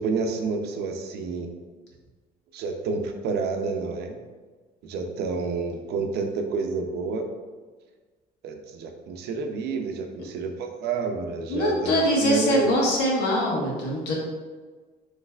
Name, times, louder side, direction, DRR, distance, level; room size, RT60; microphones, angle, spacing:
voice 1, 0.0-1.5 2.5-4.2 4.8-7.3 8.4-12.7, right 4 dB, 75° right, 4 dB, 0.6 m, -29 dB
voice 2, 11.5-14.1, equal, 80° left, -3 dB, 1.4 m, -23 dB
5.5 x 3.2 x 2.4 m, 1.4 s
cardioid pair, 110°, 17 cm